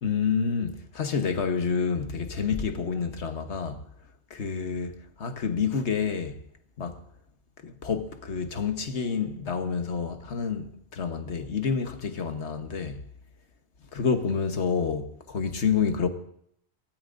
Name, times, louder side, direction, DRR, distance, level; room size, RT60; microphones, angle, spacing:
voice 1, 0.0-3.8 4.3-6.4 6.8-7.0 7.6-13.1 13.9-16.1, left 6 dB, 90° left, 1.5 m, -28 dB
23.5 x 16.5 x 2.6 m
omnidirectional pair, 1.1 m